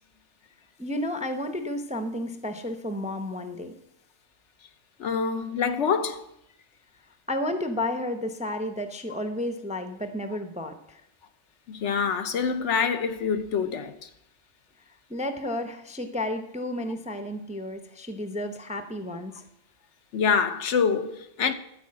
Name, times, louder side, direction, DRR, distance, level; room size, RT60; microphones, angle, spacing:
voice 1, 0.8-3.7 7.3-11.0 15.1-19.4, left 1 dB, 10° right, 0.5 m, -32 dB
voice 2, 5.0-6.3 8.5-8.6 11.7-14.1 20.1-21.5, left 6 dB, 75° left, 1.1 m, -26 dB
13.0 x 4.7 x 7.6 m
omnidirectional pair, 1.3 m